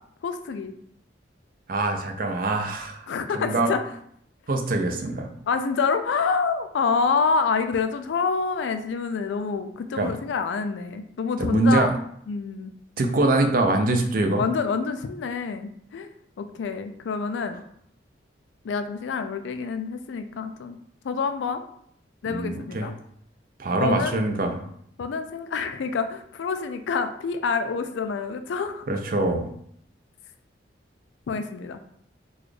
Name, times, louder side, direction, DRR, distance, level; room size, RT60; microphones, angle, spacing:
voice 1, 0.2-0.7 3.1-3.8 5.5-11.9 12.3-12.7 14.4-16.1 16.4-17.6 18.6-20.8 21.0-21.6 22.2-22.9 23.7-24.2 25.0-28.8 31.3-32.0, left 5 dB, 80° left, 9 dB, 0.3 m, -27 dB
voice 2, 1.7-3.0 3.3-3.7 4.5-5.3 10.0-10.2 11.4-11.9 13.0-14.4 22.3-22.9 23.6-24.6 28.9-29.5, right 2 dB, 50° right, 4 dB, 0.5 m, -23 dB
4.0 x 2.3 x 3.2 m, 0.67 s
head